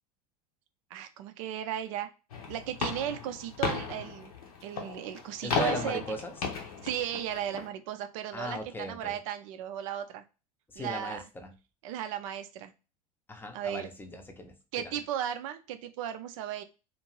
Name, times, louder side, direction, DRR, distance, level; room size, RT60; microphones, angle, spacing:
voice 1, 0.9-2.1 2.5-4.3 4.6-6.0 6.8-10.2 10.8-11.2 11.8-12.7 13.5-13.9 14.7-16.6, right 10 dB, 60° right, 10 dB, 0.5 m, -35 dB
sound 1, 2.3-7.7, left 5 dB, 70° left, 0.8 m, -35 dB
voice 2, 5.4-6.5 8.3-9.2 10.7-11.5 13.3-15.0, left 1 dB, 10° left, 5 dB, 0.6 m, -38 dB
2.6 x 2.5 x 2.9 m, 0.30 s
figure-of-eight pair, 75°, 19 cm